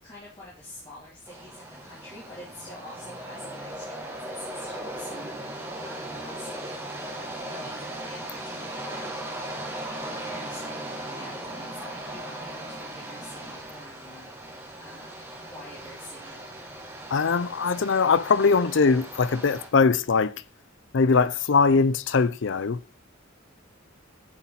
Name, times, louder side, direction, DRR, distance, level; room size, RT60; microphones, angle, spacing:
voice 1, 0.0-6.7 7.0-15.1 15.4-16.4, left 1 dB, 25° left, 3.4 m, -47 dB
sound 1, 1.3-19.7, right 1 dB, 15° right, 2.4 m, -38 dB
voice 2, 17.1-20.4 20.9-23.0, left 4 dB, 65° left, 0.5 m, -21 dB
10.0 x 7.2 x 4.1 m
head